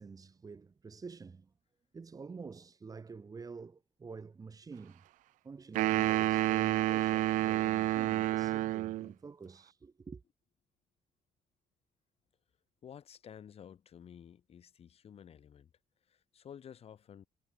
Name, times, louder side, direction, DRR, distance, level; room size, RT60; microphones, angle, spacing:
voice 1, 0.0-1.5 1.9-5.0 5.4-10.2, right 5 dB, 30° right, 3.6 m, -48 dB
sound 1, 5.7-9.1, right 16 dB, 90° right, 1.1 m, -29 dB
voice 2, 12.8-15.7 16.1-17.3, left 8 dB, 50° left, 7.9 m, -52 dB
cardioid pair, 120°, 13 cm